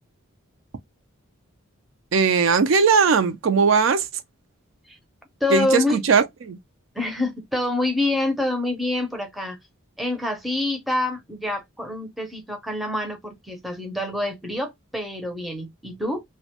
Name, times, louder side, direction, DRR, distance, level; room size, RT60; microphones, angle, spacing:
voice 1, 2.1-4.1 5.5-6.6, right 5 dB, 60° right, 0.4 m, -19 dB
voice 2, 5.4-6.0 6.9-9.6 10.0-16.2, left 2 dB, ahead, 0.5 m, -26 dB
2.4 x 2.1 x 2.7 m
head